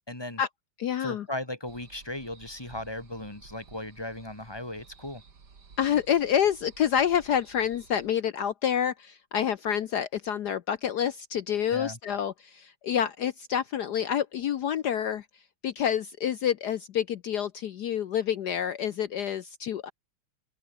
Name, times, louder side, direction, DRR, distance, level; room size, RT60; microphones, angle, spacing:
voice 1, 0.1-0.4 1.0-5.2 11.7-12.0, left 1 dB, 10° left, 2.2 m, -37 dB
voice 2, 0.8-1.3 5.8-15.2 15.6-19.9, left 9 dB, 65° left, 1.1 m, -28 dB
sound 1, 1.7-8.1, right 5 dB, 50° right, 3.0 m, -54 dB
omnidirectional pair, 2.3 m